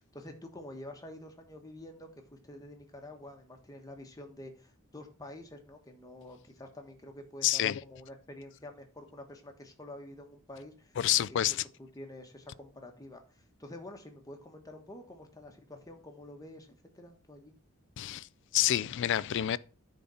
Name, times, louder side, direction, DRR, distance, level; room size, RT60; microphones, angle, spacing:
voice 1, 0.0-11.4 11.9-17.5, left 1 dB, 15° left, 1.3 m, -48 dB
voice 2, 7.4-7.8 11.0-11.6 18.0-18.3 18.5-19.6, left 12 dB, 55° left, 0.4 m, -28 dB
10.0 x 4.0 x 5.6 m
head